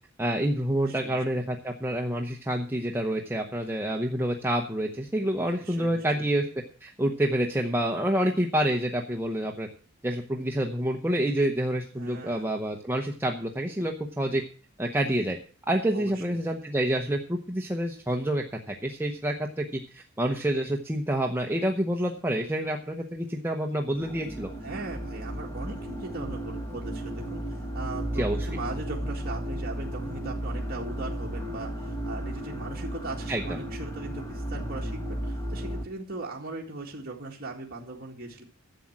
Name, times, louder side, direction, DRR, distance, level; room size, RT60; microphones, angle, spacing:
voice 1, 0.2-6.5 6.8-9.7 10.0-14.4 14.8-15.4 15.7-24.5 28.2-28.5 33.3-33.6, right 1 dB, 10° right, 1 dB, 0.9 m, -28 dB
voice 2, 0.9-1.2 5.5-6.3 11.9-12.5 15.9-16.4 24.6-38.4, right 2 dB, 45° right, -2 dB, 2.0 m, -39 dB
sound 1, 23.9-35.8, equal, 15° left, 1.9 m, -34 dB
11.5 x 7.6 x 7.3 m, 0.40 s
head